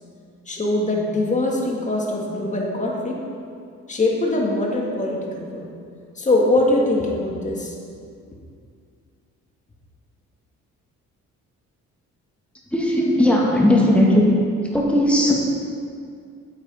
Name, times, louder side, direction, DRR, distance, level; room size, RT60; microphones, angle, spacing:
voice 1, 0.5-3.2 3.9-5.7 6.2-7.7, left 2 dB, 25° left, -1 dB, 1.8 m, -22 dB
voice 2, 12.7-14.4 14.7-15.3, left 1 dB, 5° left, -4 dB, 1.9 m, -17 dB
9.4 x 8.0 x 4.3 m, 2.3 s
cardioid pair, 90°, 30 cm